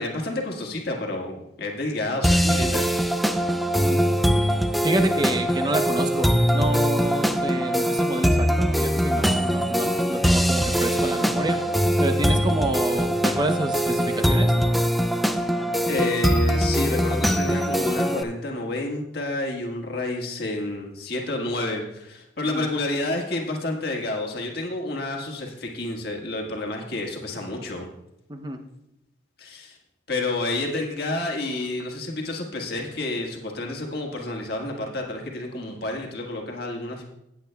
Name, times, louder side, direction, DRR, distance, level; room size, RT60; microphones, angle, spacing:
voice 1, 0.0-2.9 15.9-27.9 29.4-29.8 30.1-37.0, left 2 dB, 55° left, 1 dB, 1.6 m, -29 dB
sound 1, 2.2-18.2, equal, ahead, 0.4 m, -22 dB
voice 2, 4.8-11.6 12.0-14.5 22.4-22.7 28.3-28.6, right 1 dB, 25° right, 6 dB, 0.7 m, -28 dB
17.5 x 8.2 x 2.2 m, 0.84 s
head